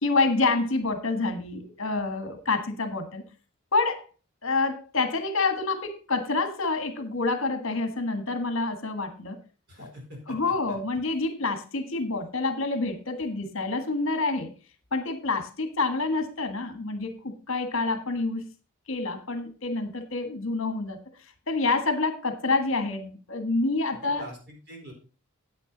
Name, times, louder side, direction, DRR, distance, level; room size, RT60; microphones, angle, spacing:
voice 1, 0.0-3.2 3.7-4.1 4.4-9.4 10.3-14.5 14.9-18.5 18.9-21.0 21.5-24.2, left 3 dB, 60° left, 7 dB, 1.6 m, -27 dB
voice 2, 9.7-10.4 10.7-10.8 24.0-24.9, equal, 50° right, 1 dB, 4.3 m, -44 dB
9.8 x 8.8 x 4.0 m, 0.33 s
head